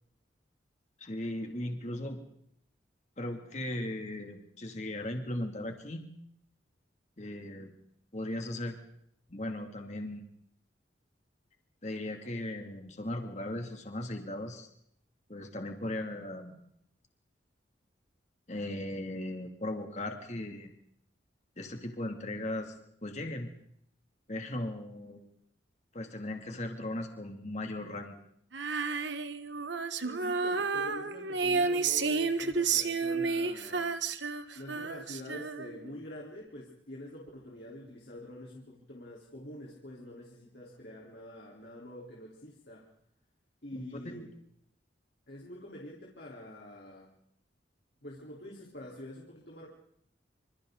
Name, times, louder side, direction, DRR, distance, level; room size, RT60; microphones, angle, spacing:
voice 1, 1.0-2.2 3.2-6.1 7.2-7.7 8.1-8.8 9.3-10.2 11.8-14.7 15.3-16.5 18.5-20.7 21.6-22.7 23.0-23.5 24.3-25.2 25.9-28.1 43.7-44.2, left 1 dB, 40° left, 4 dB, 2.7 m, -37 dB
Female singing, 28.5-35.9, right 4 dB, 75° right, 1.4 m, -31 dB
voice 2, 30.0-33.9 34.5-42.9 43.6-44.3 45.3-47.1 48.0-49.7, left 1 dB, 60° left, -3 dB, 4.0 m, -46 dB
27.5 x 27.0 x 4.0 m, 0.73 s
head